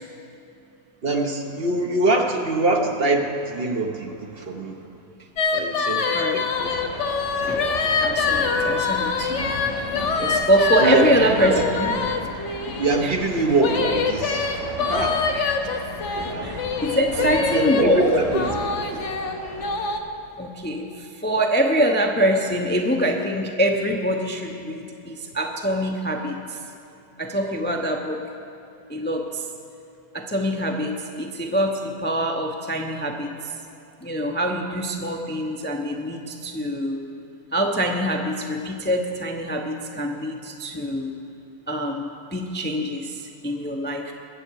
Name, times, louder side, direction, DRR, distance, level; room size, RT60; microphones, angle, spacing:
voice 1, 1.0-4.8 5.5-6.9 7.4-7.7 8.4-8.7 10.8-11.6 12.8-14.6 14.9-15.2 16.1-16.5 17.2-18.5, right 2 dB, 45° right, 3 dB, 1.0 m, -24 dB
sound 1, 5.4-13.0 13.6-17.8 18.3-20.0, left 5 dB, 60° left, 1.1 m, -25 dB
sound 2, 6.5-19.9, equal, 80° left, 4.4 m, -35 dB
voice 2, 8.0-9.5 10.2-11.9 13.0-13.1 15.3-15.6 16.4-18.0 20.4-20.9 21.2-26.4 27.2-28.2 28.9-29.4 30.1-33.3 34.0-37.0 37.5-41.1 41.7-44.1, equal, 10° left, 2 dB, 0.5 m, -24 dB
22.0 x 7.8 x 4.7 m, 2.8 s
omnidirectional pair, 1.5 m